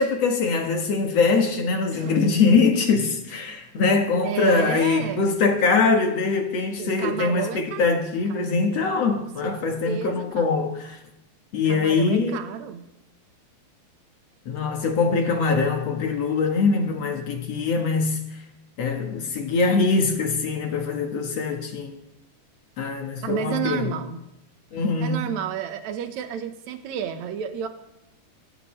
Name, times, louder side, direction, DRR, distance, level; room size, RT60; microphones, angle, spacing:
voice 1, 0.0-11.0 11.5-12.4 14.5-18.2 18.8-22.0 22.8-23.9 24.7-25.3, left 4 dB, 55° left, 2.0 m, -23 dB
voice 2, 1.9-2.3 4.2-5.4 6.8-8.0 8.3-8.5 9.2-10.5 11.7-12.8 23.2-24.2 24.7-27.7, right 9 dB, 65° right, 2.0 m, -31 dB
24.5 x 14.5 x 3.3 m
omnidirectional pair, 4.5 m